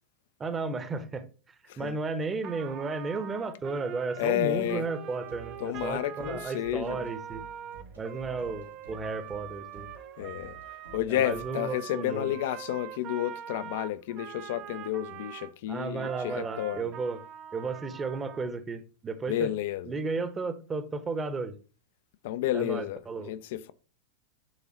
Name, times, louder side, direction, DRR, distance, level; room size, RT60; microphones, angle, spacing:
voice 1, 0.4-1.2 1.8-7.4 8.0-9.9 11.1-12.3 15.7-17.2 17.5-19.5 19.9-21.5 22.5-23.3, right 4 dB, 20° right, 0.9 m, -33 dB
Trumpet, 2.4-15.5 16.0-18.5, right 10 dB, 40° right, 0.6 m, -43 dB
voice 2, 4.2-4.9 5.6-7.1 10.2-10.6 10.9-16.9 19.3-19.9 22.2-23.0 23.3-23.7, left 13 dB, 50° left, 0.5 m, -31 dB
sound 1, 5.1-11.5, right 3 dB, 80° right, 3.0 m, -51 dB
10.5 x 3.9 x 2.9 m
figure-of-eight pair, 90°, 0 cm